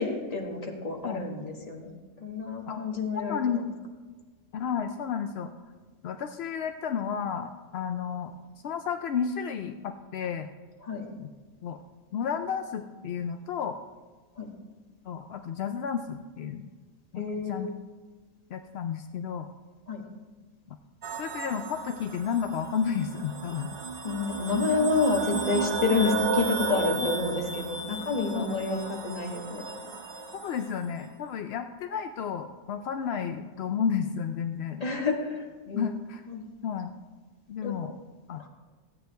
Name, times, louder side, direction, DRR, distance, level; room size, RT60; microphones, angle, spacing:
voice 1, 0.0-3.4 10.8-11.1 14.4-14.5 17.1-17.7 19.9-20.0 24.0-29.6 34.8-35.9 36.3-36.4 37.6-37.7 38.4-38.5, left 4 dB, 25° left, 0 dB, 1.5 m, -29 dB
voice 2, 3.3-3.7 4.5-5.5 6.0-8.3 8.6-10.5 11.2-11.3 11.6-11.8 12.1-13.8 15.1-16.7 17.1-17.7 18.5-19.5 20.7-20.8 21.1-23.8 25.9-26.0 27.0-27.1 28.3-28.6 30.3-34.9 35.7-36.2 36.6-36.9 37.5-37.9 38.3-38.4, left 7 dB, 70° left, 6 dB, 0.6 m, -32 dB
sound 1, 21.0-30.7, right 4 dB, 45° right, 0.6 m, -34 dB
14.5 x 8.9 x 3.4 m, 1.4 s
omnidirectional pair, 1.6 m